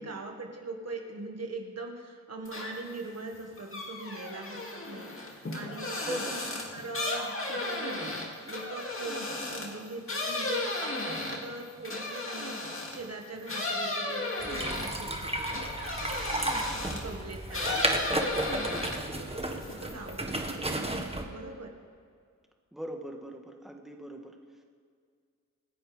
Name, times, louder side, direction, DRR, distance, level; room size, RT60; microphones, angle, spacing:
voice 1, 0.0-21.8, right 3 dB, 55° right, 3 dB, 1.8 m, -42 dB
sound 1, 2.5-3.0 3.3-13.1 13.5-17.1 17.5-19.2 19.5-20.2, left 2 dB, 45° left, 2.6 m, -35 dB
voice 2, 6.0-6.4 16.9-17.1 22.7-24.4, right 1 dB, ahead, 2 dB, 1.6 m, -41 dB
sound 2, 14.4-21.2, right 1 dB, 20° right, 1.6 m, -33 dB
27.0 x 10.5 x 3.5 m, 2.1 s
cardioid pair, 70°, 30 cm